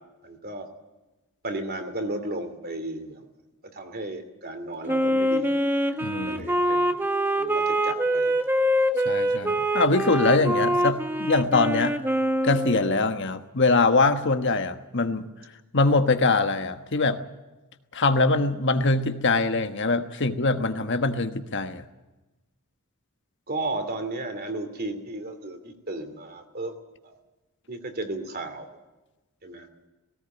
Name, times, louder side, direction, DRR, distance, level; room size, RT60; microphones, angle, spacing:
voice 1, 0.2-0.7 1.4-3.3 3.6-5.6 5.9-7.0 7.4-8.3 23.5-26.7 27.0-27.2 27.7-28.7 29.4-29.7, right 2 dB, 45° right, 7 dB, 2.8 m, -34 dB
Wind instrument woodwind instrument, 4.9-13.0, equal, 10° right, 1.3 m, -24 dB
voice 2, 6.0-6.5 9.0-12.0 12.4-15.3 15.7-17.2 17.9-21.8, left 3 dB, 55° left, 8 dB, 1.3 m, -23 dB
18.0 x 18.0 x 9.2 m, 1.1 s
head